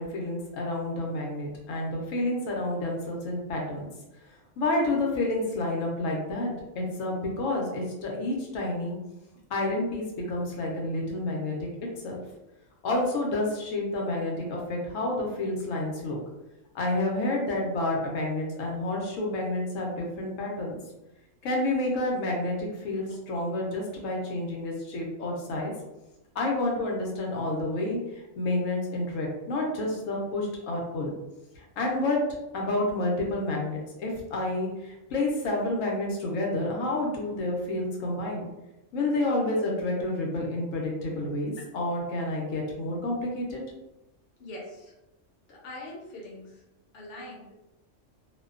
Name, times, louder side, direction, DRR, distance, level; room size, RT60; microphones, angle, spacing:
voice 1, 0.0-3.9 4.3-9.0 9.5-11.7 12.0-12.2 12.8-16.2 16.7-20.8 21.4-25.7 26.3-31.1 31.5-32.2 32.5-38.5 38.9-43.6, left 2 dB, 85° left, -1 dB, 1.0 m, -29 dB
voice 2, 44.4-44.9 45.5-46.6 46.9-47.5, left 1 dB, 55° left, -3 dB, 0.8 m, -42 dB
2.5 x 2.2 x 2.3 m, 0.96 s
omnidirectional pair, 1.3 m